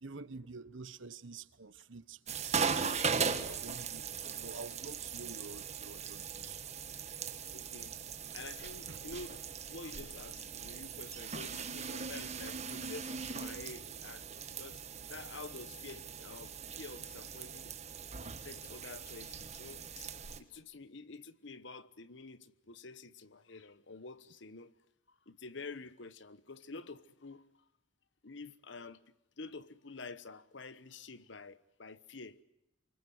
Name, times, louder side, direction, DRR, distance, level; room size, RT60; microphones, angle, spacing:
voice 1, 0.0-2.6 3.1-6.6 8.9-9.0, right 4 dB, 70° right, 1.0 m, -48 dB
sound 1, 2.3-20.4, right 6 dB, 35° right, 1.6 m, -39 dB
voice 2, 7.5-7.9 8.3-14.3 14.6-17.7 18.2-20.1 20.4-24.7 25.3-27.6 28.2-29.0 29.4-32.4, left 3 dB, 60° left, 1.1 m, -49 dB
27.5 x 24.5 x 7.9 m
head